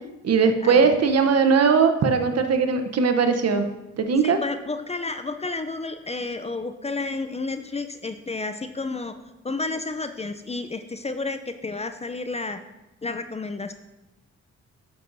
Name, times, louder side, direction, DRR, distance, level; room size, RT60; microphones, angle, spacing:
voice 1, 0.2-3.7 4.0-4.4, right 5 dB, 55° right, 7 dB, 0.8 m, -19 dB
voice 2, 4.2-9.1 9.4-12.6 13.0-13.7, left 3 dB, 20° left, 9 dB, 0.5 m, -31 dB
10.0 x 6.0 x 2.6 m, 1.0 s
cardioid pair, 60°, 30 cm